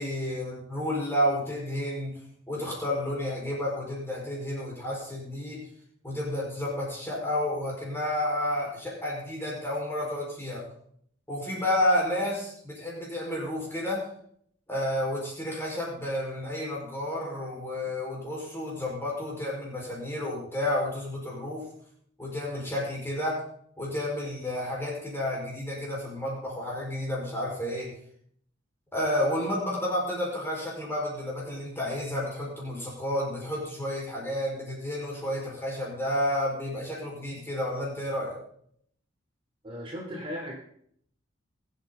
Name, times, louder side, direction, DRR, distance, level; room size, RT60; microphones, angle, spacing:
voice 1, 0.0-2.2 2.5-5.6 6.0-10.6 11.3-14.1 14.7-21.7 22.2-23.4 23.8-28.0 28.9-38.4, left 1 dB, 10° left, -4 dB, 5.1 m, -31 dB
voice 2, 39.6-40.5, equal, 25° right, -4 dB, 3.8 m, -36 dB
22.0 x 8.5 x 4.0 m, 0.65 s
head